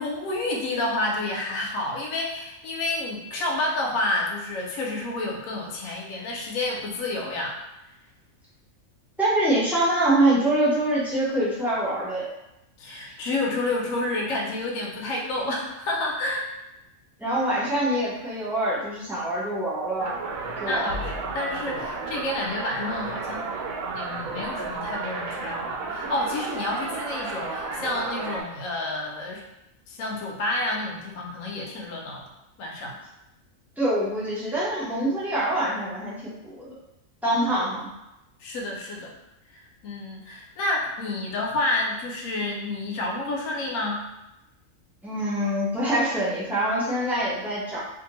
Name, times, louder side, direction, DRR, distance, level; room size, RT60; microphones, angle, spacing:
voice 1, 0.0-7.6 12.8-16.5 20.6-23.5 23.9-29.4 29.9-32.2 32.6-33.0 37.6-37.7 38.4-39.1 39.5-44.0, left 2 dB, 75° left, -1 dB, 1.0 m, -29 dB
voice 2, 9.2-12.3 13.1-13.2 17.2-20.2 20.6-20.9 33.8-36.8 37.2-37.9 45.0-47.8, right 1 dB, ahead, -9 dB, 0.5 m, -25 dB
sound 1, 20.0-28.4, right 3 dB, 80° right, 1.0 m, -32 dB
2.6 x 2.6 x 2.9 m, 0.91 s
omnidirectional pair, 1.4 m